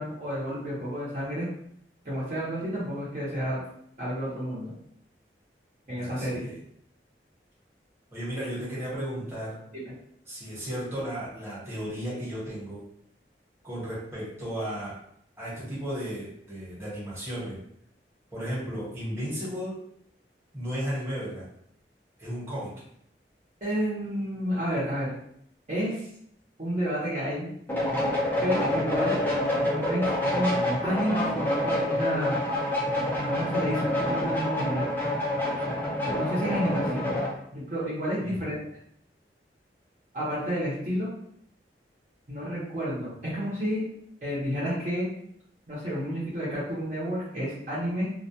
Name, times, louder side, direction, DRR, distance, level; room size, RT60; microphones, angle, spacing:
voice 1, 0.0-1.5 2.0-3.6 4.0-4.7 5.9-6.5 23.6-25.1 25.7-26.0 26.6-27.5 28.4-29.3 29.6-32.4 33.2-34.9 36.1-37.1 37.5-38.6 40.1-41.1 42.3-43.8 44.2-45.1 45.7-48.1, equal, 40° right, -8 dB, 0.8 m, -30 dB
voice 2, 5.9-6.6 8.1-9.5 10.3-12.8 13.6-15.0 15.4-17.6 18.3-19.8 20.5-21.4 22.2-22.7 38.2-38.5, equal, 15° right, -8 dB, 1.0 m, -34 dB
sound 1, 27.7-37.3, left 1 dB, 10° left, 0.4 m, -27 dB
2.3 x 2.2 x 2.7 m, 0.68 s
head